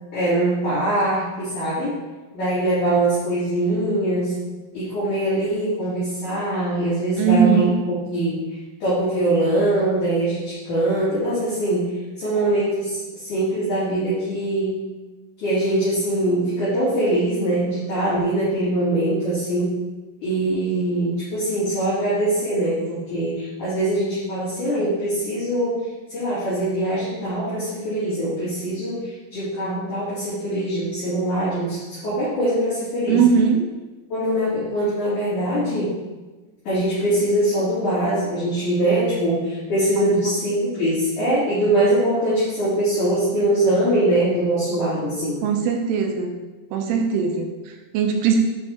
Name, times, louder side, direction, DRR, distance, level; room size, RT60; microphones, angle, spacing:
voice 1, 0.1-1.9 2.3-4.3 4.7-7.7 8.1-8.4 8.8-11.9 12.2-14.8 15.4-19.7 20.2-25.8 26.1-33.2 34.1-36.0 36.6-45.4, right 1 dB, 45° left, -13 dB, 3.3 m, -22 dB
voice 2, 7.2-7.8 33.1-33.7 40.0-40.1 45.4-46.4 46.7-48.4, right 6 dB, 85° right, 3 dB, 3.3 m, -20 dB
7.9 x 5.2 x 3.6 m, 1.2 s
omnidirectional pair, 5.6 m